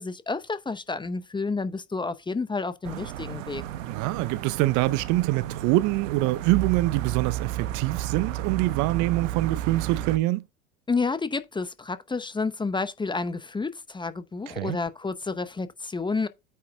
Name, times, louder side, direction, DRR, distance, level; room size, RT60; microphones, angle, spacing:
voice 1, 0.0-3.6 10.9-16.3, left 4 dB, 10° left, 0.8 m, -30 dB
sound 1, 2.8-10.2, right 12 dB, 75° right, 1.1 m, -32 dB
voice 2, 3.9-10.4 14.5-14.8, right 18 dB, 50° right, 0.7 m, -25 dB
9.3 x 5.6 x 3.7 m
hypercardioid pair, 80°, 39 cm